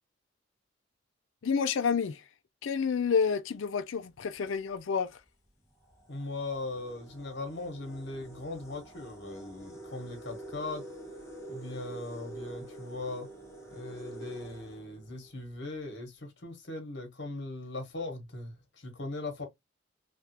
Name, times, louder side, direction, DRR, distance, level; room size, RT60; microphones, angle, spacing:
voice 1, 1.4-2.2 2.6-5.2, left 6 dB, 80° left, 0.4 m, -29 dB
sound 1, 4.1-4.4 5.2-5.3 5.8-15.5, right 1 dB, 15° left, 0.8 m, -47 dB
voice 2, 6.1-10.8 11.5-13.3 13.7-19.5, left 2 dB, 60° left, 1.2 m, -39 dB
3.3 x 2.5 x 2.9 m
head